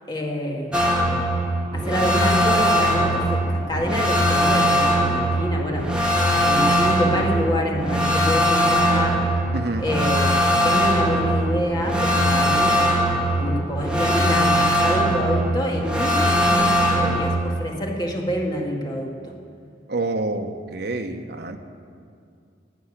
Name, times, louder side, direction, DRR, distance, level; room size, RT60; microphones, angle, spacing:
voice 1, 0.1-0.8 1.7-5.9 6.4-9.2 9.8-12.9 13.4-19.3, equal, 25° left, 0 dB, 1.9 m, -27 dB
sound 1, 0.7-17.4, equal, 5° right, 1.8 m, -20 dB
voice 2, 9.5-9.8 19.9-21.6, right 2 dB, 65° right, 6 dB, 1.0 m, -27 dB
12.5 x 9.0 x 9.7 m, 2.3 s
head